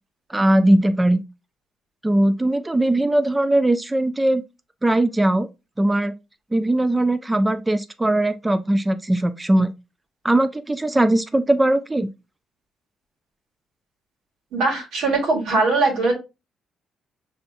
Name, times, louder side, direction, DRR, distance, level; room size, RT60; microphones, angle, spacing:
voice 1, 0.3-1.2 2.0-4.4 4.8-5.5 5.8-6.1 6.5-9.7 10.2-12.1, right 1 dB, 15° right, 0.4 m, -19 dB
voice 2, 14.5-16.1, right 3 dB, 85° right, 2.1 m, -20 dB
5.5 x 3.5 x 2.6 m
cardioid pair, 90°, 0 cm